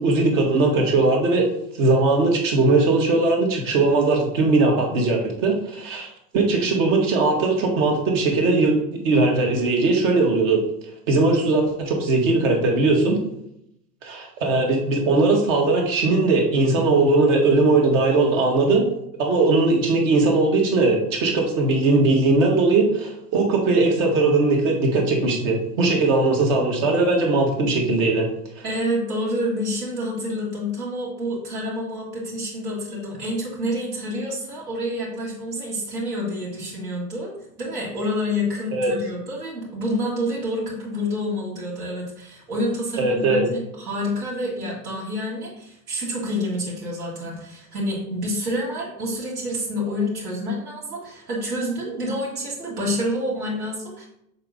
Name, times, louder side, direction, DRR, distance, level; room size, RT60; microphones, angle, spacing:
voice 1, 0.0-1.5 1.8-6.1 6.3-8.7 9.0-10.6 11.1-13.2 14.0-18.8 19.2-28.3 38.7-38.9 43.0-43.4, right 3 dB, 55° right, 1 dB, 1.8 m, -19 dB
voice 2, 28.6-37.3 37.6-54.0, left 1 dB, 75° right, -6 dB, 2.3 m, -28 dB
6.5 x 4.1 x 3.7 m, 0.79 s
figure-of-eight pair, 80°, 46 cm